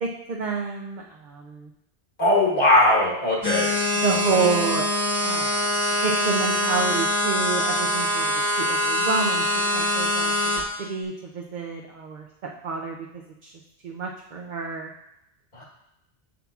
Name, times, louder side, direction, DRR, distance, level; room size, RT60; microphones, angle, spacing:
voice 1, 0.0-1.7 4.0-4.9 5.2-8.3 8.6-10.3 10.8-13.0 13.4-13.5 13.8-14.9, right 5 dB, 50° right, 0 dB, 0.6 m, -29 dB
voice 2, 2.2-3.7 4.1-4.4 15.5-15.6, left 1 dB, 55° left, -3 dB, 1.5 m, -20 dB
sound 1, 3.4-10.6, left 1 dB, 20° left, 1.1 m, -24 dB
7.4 x 7.2 x 2.4 m, 0.85 s
omnidirectional pair, 1.1 m